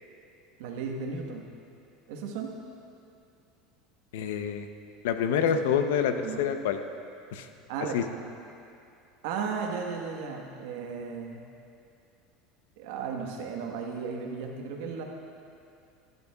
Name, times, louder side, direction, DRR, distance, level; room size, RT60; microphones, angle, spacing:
voice 1, 0.6-1.5 2.1-2.5 5.4-5.5 6.2-6.4 7.7-8.0 9.2-11.4 12.8-15.0, right 5 dB, 75° right, 2 dB, 1.3 m, -35 dB
voice 2, 4.1-4.7 5.0-6.8 7.3-7.5 7.9-8.0, left 7 dB, 85° left, 8 dB, 0.6 m, -27 dB
15.0 x 11.0 x 2.3 m, 2.6 s
supercardioid pair, 120°, 0 cm